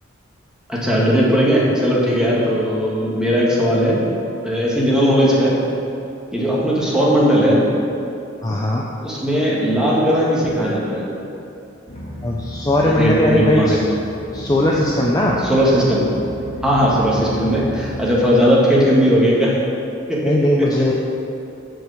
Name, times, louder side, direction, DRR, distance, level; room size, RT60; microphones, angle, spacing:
voice 1, 0.7-4.1 4.4-5.6 6.3-7.7 9.0-11.1 12.8-13.8 15.4-16.1 16.6-19.6 20.1-20.7, equal, 5° right, -6 dB, 1.5 m, -17 dB
voice 2, 8.4-8.9 12.2-13.8 14.3-15.4 20.2-20.9, left 1 dB, 20° left, -3 dB, 0.5 m, -18 dB
sound 1, 11.9-18.0, equal, 35° left, 1.8 m, -33 dB
7.8 x 4.9 x 6.9 m, 2.7 s
head